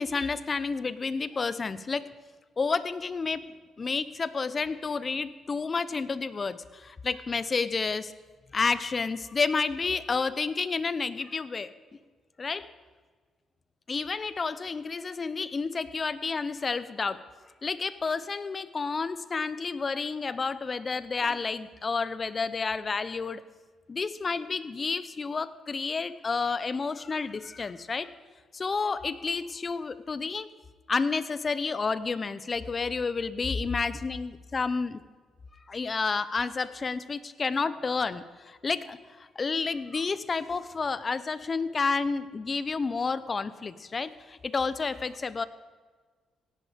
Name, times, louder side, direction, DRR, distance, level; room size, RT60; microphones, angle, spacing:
voice 1, 0.0-2.1 2.6-3.5 3.8-8.1 8.5-11.7 12.4-12.7 13.9-17.3 17.6-23.4 23.9-28.1 28.5-30.5 30.9-35.0 35.7-45.5, left 4 dB, 35° left, 15 dB, 0.7 m, -30 dB
17.0 x 11.0 x 5.2 m, 1.5 s
cardioid pair, 90°, 0 cm